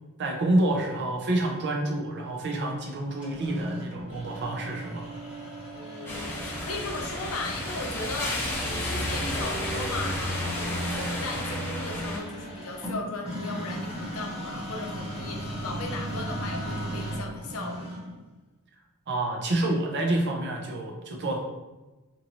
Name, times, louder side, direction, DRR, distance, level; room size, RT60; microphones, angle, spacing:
voice 1, 0.2-5.1 19.1-21.4, right 1 dB, 50° right, 0 dB, 0.5 m, -28 dB
sound 1, 3.2-18.2, right 1 dB, 5° right, 0.9 m, -37 dB
voice 2, 5.7-17.9, left 3 dB, 65° left, 2 dB, 0.5 m, -37 dB
sound 2, 6.1-12.2, left 1 dB, 10° left, 0.5 m, -31 dB
2.6 x 2.6 x 3.0 m, 1.1 s
head